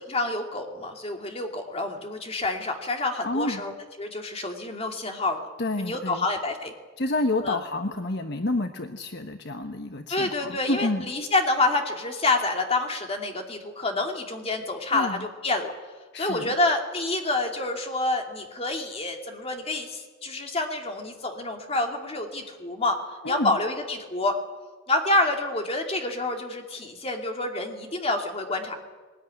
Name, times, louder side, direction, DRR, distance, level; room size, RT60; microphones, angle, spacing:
voice 1, 0.1-5.4 5.8-6.7 7.4-7.6 10.1-15.7 16.1-24.4 24.9-28.8, left 2 dB, 30° left, 3 dB, 2.6 m, -28 dB
voice 2, 3.2-3.6 5.6-6.2 7.0-11.1 14.9-15.2 16.1-16.5 23.2-23.5, left 2 dB, 55° left, 6 dB, 1.1 m, -29 dB
21.0 x 20.0 x 10.0 m, 1.4 s
head